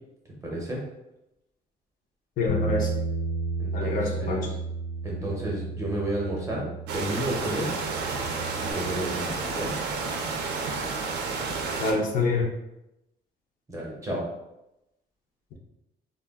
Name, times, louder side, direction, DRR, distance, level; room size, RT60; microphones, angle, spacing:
voice 1, 0.4-0.8 3.6-4.5 5.0-7.7 8.6-9.8 13.7-14.3, right 1 dB, 15° right, -3 dB, 0.5 m, -32 dB
voice 2, 2.4-2.9 3.7-4.4 11.8-12.5, left 3 dB, 50° left, 0 dB, 0.4 m, -26 dB
Bass guitar, 2.5-8.7, right 3 dB, 75° left, 0.9 m, -33 dB
sound 1, 6.9-11.9, right 4 dB, 75° right, 0.4 m, -31 dB
2.2 x 2.0 x 3.4 m, 0.90 s
cardioid pair, 170°, 17 cm